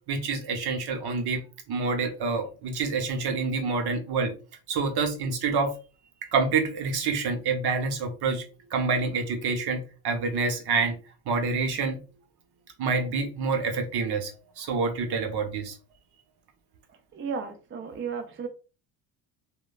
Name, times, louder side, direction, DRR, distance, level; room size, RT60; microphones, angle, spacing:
voice 1, 0.1-1.4 1.7-4.3 4.7-5.7 6.3-8.4 8.7-11.0 11.3-12.0 12.8-14.3 14.6-15.7, right 4 dB, 60° right, 5 dB, 0.8 m, -27 dB
voice 2, 17.1-18.5, right 5 dB, 30° right, 6 dB, 0.4 m, -34 dB
3.0 x 2.1 x 2.3 m, 0.35 s
supercardioid pair, 80°, 44 cm